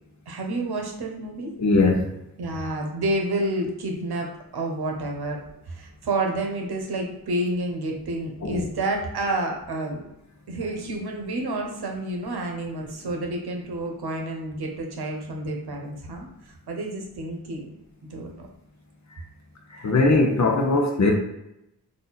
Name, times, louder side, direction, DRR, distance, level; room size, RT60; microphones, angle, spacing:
voice 1, 0.3-1.5 2.4-5.4 5.7-10.0 10.5-16.3 16.7-17.7 18.1-18.5, right 1 dB, 70° right, 2 dB, 0.9 m, -29 dB
voice 2, 1.6-2.1 8.4-8.7 19.7-21.1, left 3 dB, 45° left, 2 dB, 0.8 m, -20 dB
4.2 x 2.6 x 4.0 m, 0.85 s
wide cardioid pair, 155°, 40 cm